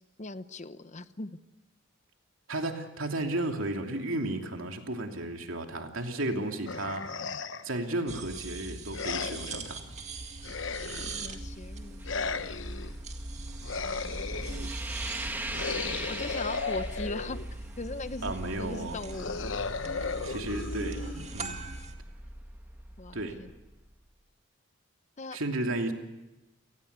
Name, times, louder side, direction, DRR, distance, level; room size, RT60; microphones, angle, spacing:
voice 1, 0.2-1.3 6.2-6.5 10.8-12.1 16.1-17.4 17.8-19.4 23.0-23.5 25.2-25.4, left 2 dB, 35° left, 12 dB, 0.9 m, -39 dB
voice 2, 2.5-7.2 7.6-9.8 18.2-19.0 20.2-21.0 21.3-21.6 23.1-23.4 25.3-25.9, right 2 dB, 80° right, 3 dB, 2.9 m, -33 dB
sound 1, 6.7-7.8 8.9-9.7 10.4-11.4 12.0-12.9 13.6-14.7 15.5-17.6 19.1-21.5, left 4 dB, 65° left, 1.0 m, -35 dB
sound 2, 8.1-21.9, right 3 dB, 35° right, 2.0 m, -42 dB
sound 3, 10.0-23.9, right 1 dB, 10° right, 1.3 m, -41 dB
30.0 x 19.0 x 8.2 m, 1.0 s
head